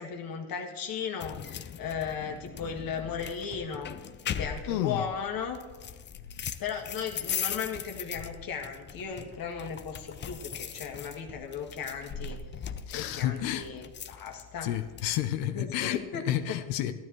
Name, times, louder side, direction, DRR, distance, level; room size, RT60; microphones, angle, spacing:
voice 1, 0.0-1.4 1.8-3.9 4.4-5.6 6.6-12.4 12.9-14.7 15.5-16.6, left 6 dB, 45° left, 2 dB, 1.8 m, -36 dB
sound 1, 1.2-15.2, left 8 dB, 25° left, 0.5 m, -40 dB
voice 2, 4.7-5.0 12.9-13.7 14.6-16.9, left 12 dB, 70° left, 10 dB, 0.9 m, -30 dB
14.0 x 12.0 x 3.1 m, 1.4 s
supercardioid pair, 95°, 46 cm